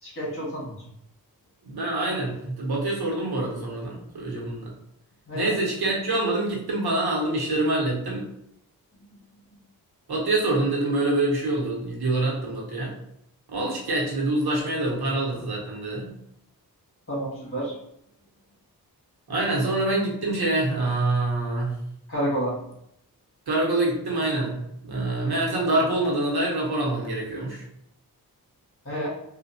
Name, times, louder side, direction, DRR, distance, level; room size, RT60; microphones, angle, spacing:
voice 1, 0.0-0.9 5.3-5.6 17.1-17.7 22.1-22.6 28.8-29.1, right 1 dB, 35° left, -6 dB, 1.5 m, -29 dB
voice 2, 1.6-4.7 5.3-8.2 10.1-12.9 13.5-16.2 19.3-21.7 23.5-27.6, right 2 dB, 80° right, -3 dB, 1.0 m, -26 dB
3.4 x 2.4 x 2.7 m, 0.76 s
wide cardioid pair, 110°, 38 cm